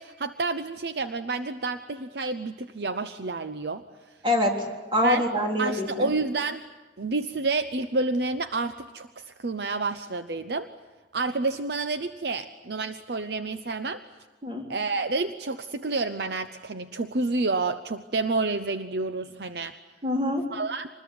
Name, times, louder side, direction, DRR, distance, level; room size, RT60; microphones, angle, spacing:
voice 1, 0.0-3.8 5.0-5.2 5.6-6.6 7.0-10.7 11.1-14.0 14.7-19.7 20.5-20.9, right 3 dB, 60° right, 9 dB, 0.8 m, -29 dB
voice 2, 4.2-4.6 4.9-6.1 14.4-14.6 20.0-20.4, left 1 dB, 25° right, 1 dB, 3.8 m, -25 dB
26.0 x 20.5 x 9.4 m, 1.2 s
head